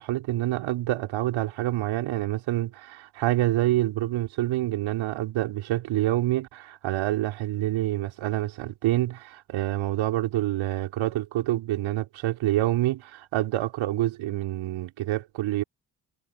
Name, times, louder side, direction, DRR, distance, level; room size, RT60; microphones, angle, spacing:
voice 1, 0.0-15.6, right 15 dB, 65° right, 4.3 m, -27 dB
hypercardioid pair, 50°, 50 cm